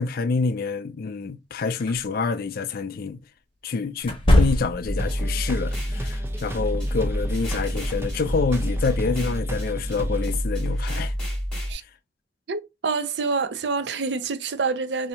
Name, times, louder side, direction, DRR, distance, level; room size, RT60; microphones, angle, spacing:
voice 1, 0.0-3.2 3.6-11.1, left 4 dB, 55° left, 0.4 m, -27 dB
sound 1, 1.8-2.0 4.0-5.0, left 1 dB, 30° left, 0.9 m, -20 dB
sound 2, 4.9-11.7, equal, 5° left, 1.5 m, -28 dB
sound 3, 5.0-10.3, right 1 dB, 15° right, 0.6 m, -35 dB
voice 2, 12.5-15.1, right 4 dB, 70° right, 0.5 m, -27 dB
2.8 x 2.7 x 4.2 m
head